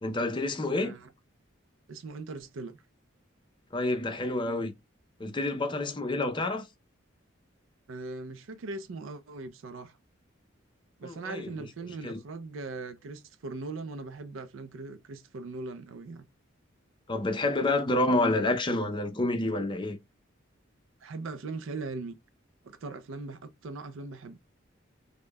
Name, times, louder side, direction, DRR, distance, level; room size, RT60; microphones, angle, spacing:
voice 1, 0.0-0.9 3.7-4.7 5.2-6.7 11.0-11.7 12.0-12.2 17.1-20.0, left 2 dB, 25° left, 0.5 m, -28 dB
voice 2, 1.9-2.8 7.9-10.0 11.0-16.3 21.0-22.1 22.6-24.4, right 3 dB, 80° right, 0.4 m, -40 dB
5.1 x 2.2 x 2.2 m
head